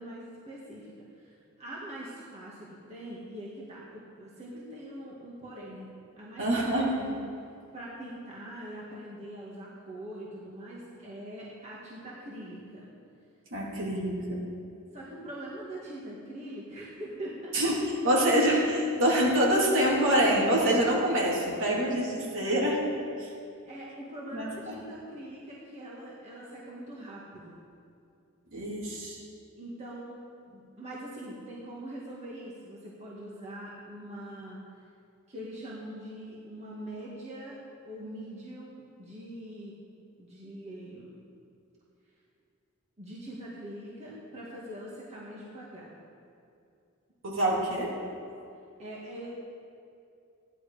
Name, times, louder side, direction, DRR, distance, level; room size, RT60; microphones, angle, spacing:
voice 1, 0.0-6.6 6.9-7.2 7.7-12.9 14.9-17.5 23.6-27.6 29.6-34.6 35.3-37.6 37.8-39.8 40.2-41.3 43.0-46.0 47.4-47.6 48.0-48.1 48.8-49.3, right 1 dB, 30° right, -6 dB, 2.0 m, -43 dB
voice 2, 6.4-7.0 13.5-14.4 17.5-17.8 18.0-22.8 23.2-23.3 24.3-24.8 28.5-29.2 47.2-47.9, right 1 dB, 60° right, -5 dB, 3.3 m, -26 dB
15.0 x 11.0 x 5.1 m, 2.6 s
head